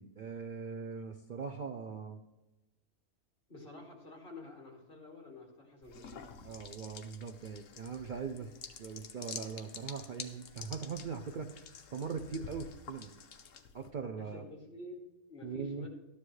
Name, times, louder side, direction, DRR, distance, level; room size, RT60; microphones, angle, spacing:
voice 1, 0.0-2.2 6.4-8.5 8.8-11.6 11.9-13.2 13.7-14.4 15.4-15.9, right 5 dB, 90° right, 6 dB, 0.4 m, -41 dB
voice 2, 3.5-6.2 14.2-15.9, left 2 dB, 35° left, 0 dB, 2.4 m, -49 dB
sound 1, 5.8-13.9, left 6 dB, 60° left, 1.1 m, -49 dB
13.0 x 10.0 x 3.2 m, 0.95 s
omnidirectional pair, 1.6 m